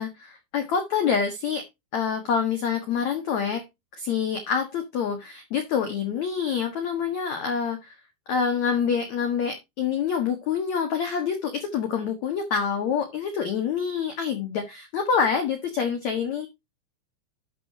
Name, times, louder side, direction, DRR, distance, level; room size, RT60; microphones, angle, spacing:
voice 1, 0.0-1.6 1.9-3.6 4.0-8.0 8.3-16.5, left 6 dB, 60° left, 6 dB, 2.0 m, -26 dB
12.5 x 7.9 x 2.8 m, 0.22 s
omnidirectional pair, 5.4 m